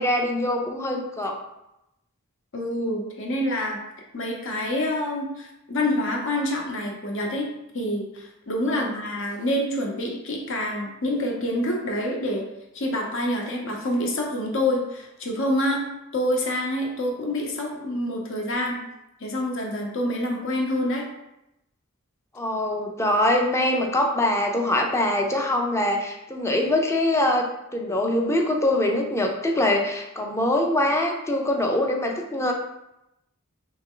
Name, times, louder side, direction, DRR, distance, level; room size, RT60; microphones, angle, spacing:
voice 1, 0.0-1.4 8.7-8.9 22.3-32.5, left 1 dB, 15° left, 1 dB, 0.5 m, -23 dB
voice 2, 2.5-3.8 4.1-7.5 7.7-12.4 12.7-15.9 16.1-18.8 19.2-21.1, left 1 dB, 60° left, 0 dB, 0.9 m, -27 dB
3.4 x 3.2 x 3.7 m, 0.88 s
head